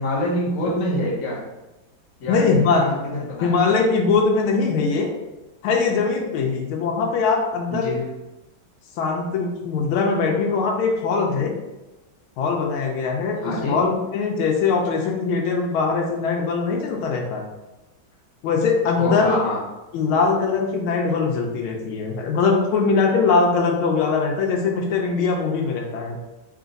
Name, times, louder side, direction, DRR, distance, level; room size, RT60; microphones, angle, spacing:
voice 1, 0.0-1.4 2.2-3.7 7.7-8.0 13.4-13.9 18.9-19.6, left 1 dB, 45° left, -4 dB, 1.2 m, -26 dB
voice 2, 2.3-2.8 3.4-5.1 5.6-7.9 9.0-11.5 12.4-17.4 18.4-19.3 19.9-26.2, left 4 dB, 85° left, 1 dB, 1.5 m, -21 dB
3.7 x 2.4 x 3.8 m, 1.0 s
omnidirectional pair, 2.2 m